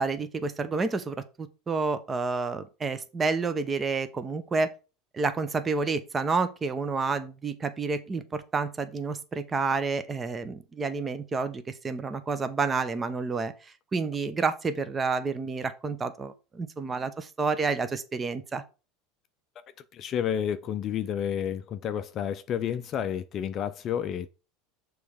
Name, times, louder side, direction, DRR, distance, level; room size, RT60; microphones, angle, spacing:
voice 1, 0.0-4.7 5.1-13.5 13.9-18.6, right 4 dB, 20° right, 0.6 m, -29 dB
voice 2, 19.9-24.3, left 9 dB, 35° left, 0.4 m, -30 dB
6.8 x 3.2 x 4.9 m
supercardioid pair, 145°, 0 cm